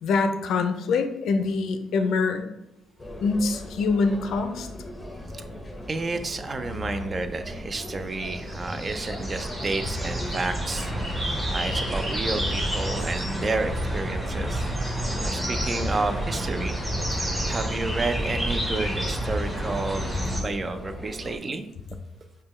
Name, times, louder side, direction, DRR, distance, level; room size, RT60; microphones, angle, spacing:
voice 1, 0.0-2.5 3.2-4.7, left 4 dB, 75° left, 7 dB, 0.4 m, -24 dB
sound 1, 3.0-21.4, left 1 dB, 15° left, 0.7 m, -39 dB
voice 2, 5.9-10.9 11.5-14.7 15.2-16.8 17.4-21.7, right 3 dB, 35° right, 9 dB, 0.4 m, -31 dB
sound 2, 8.2-20.4, equal, 10° right, 1.1 m, -29 dB
5.3 x 2.2 x 3.1 m, 0.84 s
cardioid pair, 90°, 0 cm